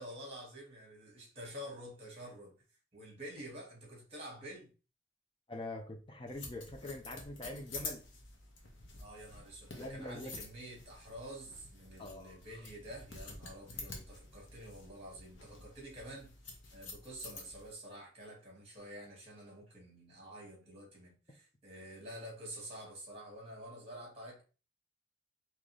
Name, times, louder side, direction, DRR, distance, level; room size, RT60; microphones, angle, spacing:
voice 1, 0.0-2.5 2.9-4.7 9.0-16.3 16.7-24.4, equal, 30° right, 1.9 m, -49 dB
voice 2, 5.5-8.0 9.8-10.4 12.0-12.7, left 2 dB, 25° left, 0.7 m, -44 dB
sound 1, 6.3-17.7, left 3 dB, 80° left, 1.0 m, -49 dB
3.9 x 3.0 x 3.2 m
head